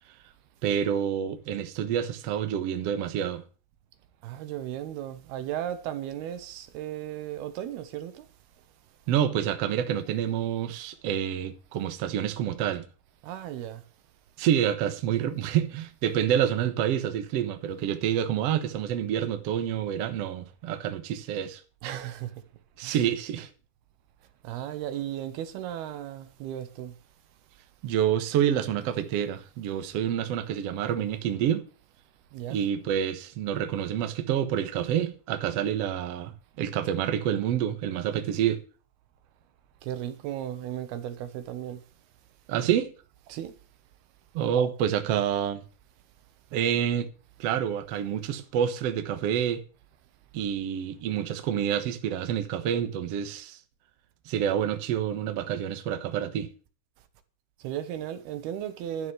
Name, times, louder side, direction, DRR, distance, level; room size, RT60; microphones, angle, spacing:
voice 1, 0.6-3.4 9.1-12.8 14.4-21.6 22.8-23.5 27.8-31.6 32.5-38.6 42.5-42.9 44.3-45.6 46.5-47.1 47.4-49.6 50.3-53.6 54.2-56.5, right 9 dB, 65° right, 1.6 m, -28 dB
voice 2, 4.2-8.3 13.2-13.8 21.8-22.3 22.8-23.1 24.4-27.0 32.3-32.6 39.8-41.8 43.3-43.5 57.6-59.1, right 11 dB, 85° right, 3.1 m, -35 dB
12.0 x 6.4 x 7.9 m
omnidirectional pair, 4.5 m